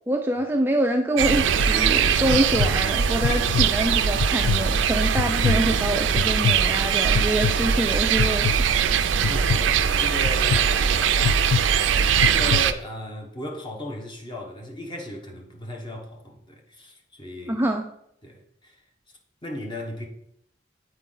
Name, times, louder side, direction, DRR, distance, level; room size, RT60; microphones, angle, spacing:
voice 1, 0.1-8.7 17.5-17.8, right 1 dB, 10° right, 0.3 m, -25 dB
sound 1, 1.2-12.7, right 7 dB, 85° right, 0.4 m, -21 dB
sound 2, 1.3-1.7 2.2-2.7 3.2-3.7 4.2-4.6 5.2-5.6 6.2-6.6 7.2-7.5 8.2-8.6 9.2-9.6 10.3-10.6 11.2-11.6 12.2-12.6, left 7 dB, 85° left, 0.3 m, -24 dB
voice 2, 9.2-11.4 12.2-17.6 18.2-18.8 19.4-20.1, left 1 dB, 25° left, 1.0 m, -36 dB
8.0 x 4.5 x 3.8 m
head